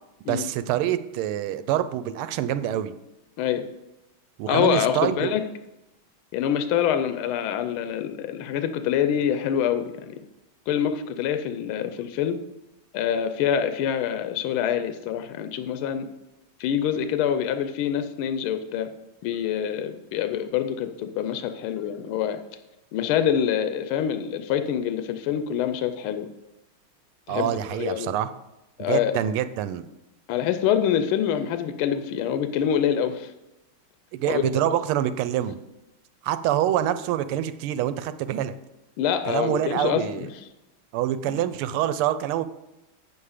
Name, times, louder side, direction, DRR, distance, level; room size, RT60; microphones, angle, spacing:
voice 1, 0.3-2.9 4.4-5.3 27.3-28.3 28.8-29.9 34.1-35.6 36.2-38.5 39.3-40.3 40.9-42.4, right 11 dB, 85° right, 13 dB, 1.5 m, -26 dB
voice 2, 4.5-5.4 6.3-10.2 10.7-12.4 12.9-16.1 16.6-18.9 19.2-22.4 22.9-26.3 27.3-27.5 27.8-28.1 28.8-29.2 30.3-33.3 34.3-34.4 39.0-40.3 41.3-41.4, left 9 dB, 80° left, 9 dB, 1.5 m, -25 dB
8.8 x 7.2 x 4.9 m, 0.96 s
omnidirectional pair, 2.4 m